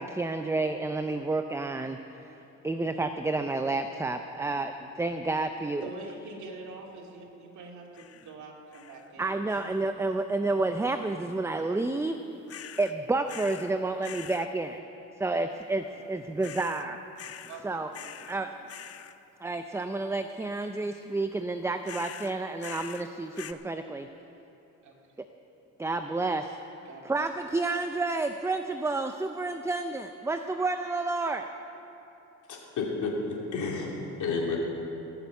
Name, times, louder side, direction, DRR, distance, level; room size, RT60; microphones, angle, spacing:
voice 1, 0.0-2.0 2.6-5.8 9.2-12.2 12.8-14.8 15.2-17.0 17.6-17.9 18.3-18.5 19.4-24.1 25.8-26.6 27.0-31.5, right 3 dB, 10° right, 7 dB, 0.5 m, -30 dB
voice 2, 5.8-9.7 15.9-16.4 17.5-18.8 24.8-25.2 26.8-27.2, right 3 dB, 70° right, -1 dB, 2.3 m, -46 dB
sound 1, 7.9-8.3 8.7-9.1 9.5-9.9 12.5-12.9 13.3-13.7 14.0-14.5 16.4-16.9 17.2-17.6 17.9-18.4 18.7-19.1 21.8-23.1 23.3-23.5, left 10 dB, 50° left, 0.6 m, -44 dB
voice 3, 32.5-34.6, left 4 dB, 75° left, -2 dB, 3.0 m, -31 dB
18.5 x 7.0 x 8.0 m, 2.9 s
cardioid pair, 90°, 30 cm